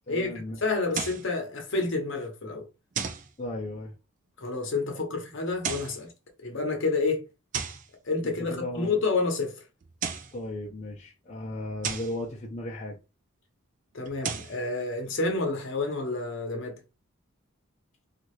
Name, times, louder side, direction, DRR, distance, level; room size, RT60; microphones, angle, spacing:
voice 1, 0.1-0.6 3.4-3.9 8.2-8.9 10.3-13.0, left 1 dB, 30° left, 0.5 m, -36 dB
voice 2, 0.6-2.7 4.4-6.1 6.4-7.2 8.0-9.5 13.9-16.7, left 3 dB, 55° left, 0.8 m, -29 dB
sound 1, 0.9-1.3 2.9-3.3 5.5-6.0 7.5-7.9 9.8-10.4 11.8-12.2 14.0-14.6, right 6 dB, 35° right, 0.3 m, -33 dB
2.7 x 2.4 x 3.1 m
head